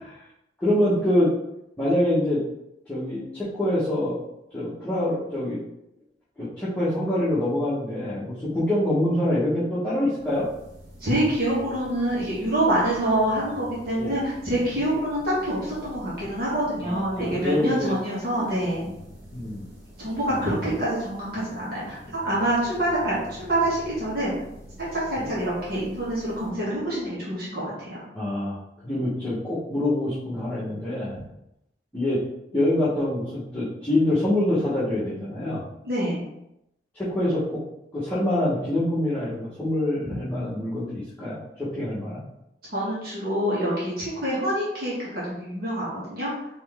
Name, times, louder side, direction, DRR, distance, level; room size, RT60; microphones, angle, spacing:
voice 1, 0.6-1.3 1.8-2.4 2.9-4.2 4.5-5.6 6.4-10.5 14.0-14.1 16.8-17.9 19.3-19.6 20.3-20.7 25.2-25.3 28.1-31.2 31.9-32.2 32.5-35.6 36.9-37.6 37.9-42.2, left 1 dB, 10° left, -12 dB, 1.2 m, -25 dB
sound 1, 10.2-27.7, equal, 20° right, 1.4 m, -46 dB
voice 2, 11.0-18.9 20.0-24.3 24.8-28.0 35.8-36.2 42.7-46.3, right 1 dB, 55° right, -8 dB, 1.6 m, -26 dB
4.2 x 3.1 x 3.5 m, 0.83 s
head